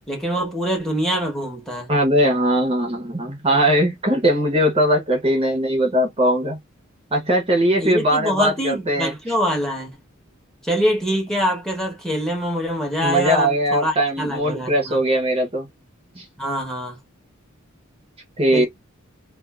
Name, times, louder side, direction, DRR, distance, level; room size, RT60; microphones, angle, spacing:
voice 1, 0.1-1.9 7.8-10.0 10.6-15.0 16.4-17.0 18.5-18.7, equal, ahead, 1.0 m, -24 dB
voice 2, 1.9-6.6 7.1-9.1 13.0-15.7 16.1-16.2 18.4-18.7, equal, 30° right, 0.8 m, -20 dB
2.5 x 2.5 x 2.3 m
head